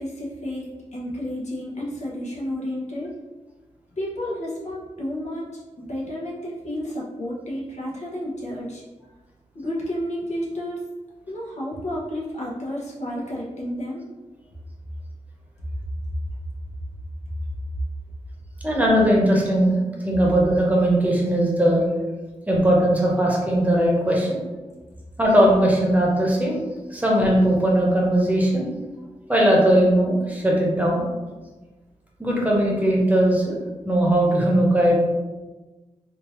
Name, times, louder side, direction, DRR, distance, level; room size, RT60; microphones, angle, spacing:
voice 1, 0.0-3.1 4.0-5.5 5.8-8.8 9.5-10.8 11.3-14.1, equal, 65° left, -6 dB, 1.0 m, -31 dB
voice 2, 18.6-19.8 20.0-21.8 22.5-24.4 25.2-26.6 26.9-28.7 29.3-31.0 32.2-33.6 33.8-35.0, right 1 dB, 10° right, -3 dB, 1.0 m, -19 dB
3.6 x 2.7 x 3.1 m, 1.2 s
wide cardioid pair, 90°, 12 cm